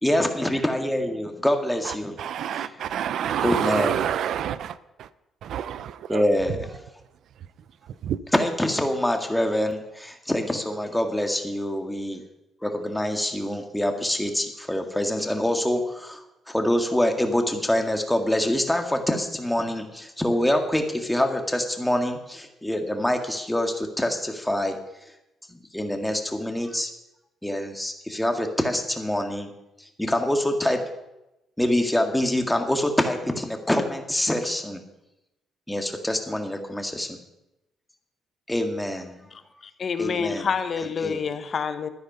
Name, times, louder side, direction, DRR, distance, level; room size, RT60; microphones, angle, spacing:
voice 1, 0.0-2.2 2.5-2.7 3.4-4.0 6.1-6.8 8.3-12.2 12.6-24.8 25.5-26.9 27.4-29.5 29.8-30.8 31.6-34.8 35.7-37.2 38.5-39.3 40.0-40.5 41.0-41.2, left 1 dB, 5° left, 1.9 m, -25 dB
voice 2, 1.8-5.1 5.4-6.2 8.0-8.2, right 9 dB, 70° right, 0.6 m, -28 dB
voice 3, 39.8-41.9, left 6 dB, 50° left, 1.1 m, -27 dB
12.5 x 9.9 x 5.6 m
cardioid pair, 90°, 0 cm